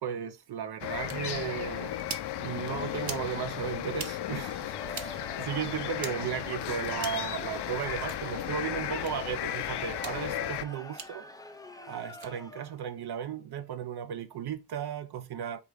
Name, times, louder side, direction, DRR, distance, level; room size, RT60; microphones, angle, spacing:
voice 1, 0.0-2.0 2.3-11.3 11.8-15.6, right 8 dB, 75° right, 0.5 m, -35 dB
sound 1, 0.8-10.6, left 12 dB, 85° left, 0.5 m, -35 dB
sound 2, 1.1-1.2 2.0-2.3 3.0-3.3 3.9-4.1 4.9-5.1 6.0-6.2 7.0-7.3 8.0-8.2 9.0-9.1 9.9-10.2 11.0-11.1 12.1-12.3, right 5 dB, 45° right, 0.8 m, -40 dB
Crowd, 4.4-12.9, left 1 dB, 10° left, 0.4 m, -47 dB
4.8 x 2.3 x 4.8 m
wide cardioid pair, 100°, 39 cm